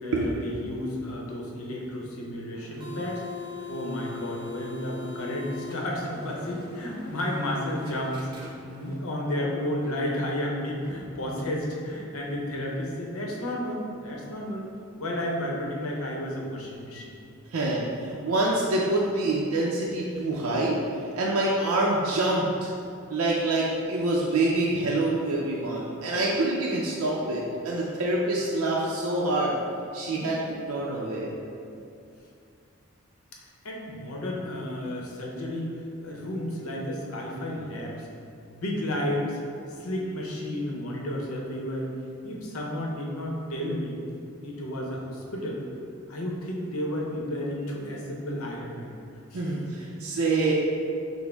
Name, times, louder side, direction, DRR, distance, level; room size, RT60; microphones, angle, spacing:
voice 1, 0.0-3.2 3.7-14.7 15.0-17.2 33.6-38.1 38.5-39.4 39.8-41.9 42.2-44.0 44.4-45.6 46.1-48.9 49.3-49.7, left 1 dB, 85° left, -2 dB, 0.7 m, -32 dB
sound 1, 2.5-9.0, left 3 dB, 20° right, 0.4 m, -41 dB
voice 2, 17.5-22.7 23.1-29.6 29.9-31.3 49.3-50.5, right 2 dB, 90° right, -4 dB, 0.5 m, -26 dB
6.0 x 2.0 x 3.4 m, 2.5 s
head